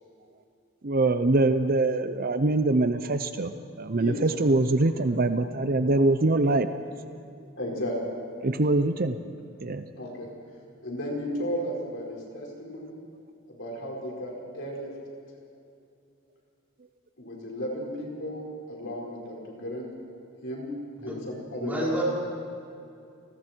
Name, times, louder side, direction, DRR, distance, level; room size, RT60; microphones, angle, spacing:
voice 1, 0.8-7.2 8.4-9.2 9.6-9.8, right 2 dB, 45° right, 10 dB, 0.7 m, -24 dB
voice 2, 7.6-8.0 9.9-10.3 10.8-13.0 13.5-14.9 17.2-19.9 20.4-21.2 21.5-22.0, equal, 60° left, -2 dB, 5.3 m, -34 dB
voice 3, 21.6-22.0, right 1 dB, 10° right, -6 dB, 5.3 m, -30 dB
30.0 x 20.0 x 4.6 m, 2.5 s
head